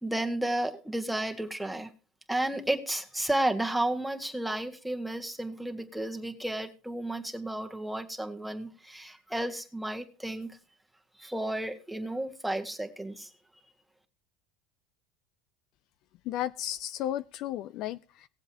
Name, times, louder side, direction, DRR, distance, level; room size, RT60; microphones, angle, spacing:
voice 1, 0.0-1.9 2.3-10.6 11.2-13.3, right 1 dB, 5° right, 3 dB, 1.6 m, -32 dB
voice 2, 16.3-18.3, left 12 dB, 55° left, 14 dB, 0.4 m, -34 dB
19.0 x 7.6 x 2.9 m, 0.36 s
supercardioid pair, 105°, 0 cm